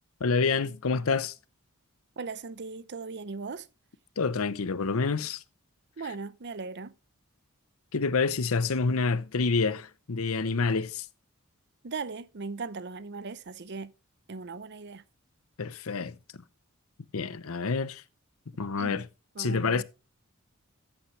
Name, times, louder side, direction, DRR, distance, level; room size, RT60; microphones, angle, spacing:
voice 1, 0.2-1.3 4.2-5.4 7.9-11.0 15.6-16.1 17.1-18.0 18.6-19.0 19.4-19.8, left 4 dB, 80° left, 0.7 m, -27 dB
voice 2, 2.2-3.7 6.0-6.9 11.8-13.9 14.3-15.0 18.8-19.0 19.3-19.8, right 4 dB, 50° right, 0.7 m, -38 dB
13.5 x 8.8 x 3.2 m
head